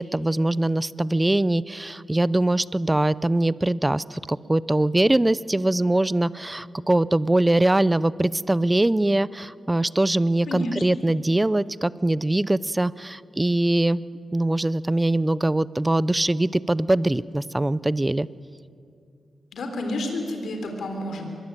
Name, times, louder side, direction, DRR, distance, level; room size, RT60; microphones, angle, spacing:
voice 1, 0.0-14.0 14.3-18.3, right 1 dB, 15° right, 19 dB, 0.5 m, -22 dB
voice 2, 10.5-10.8 19.5-21.2, left 1 dB, 80° left, 4 dB, 3.7 m, -30 dB
24.5 x 21.5 x 9.1 m, 2.4 s
cardioid pair, 95°, 0 cm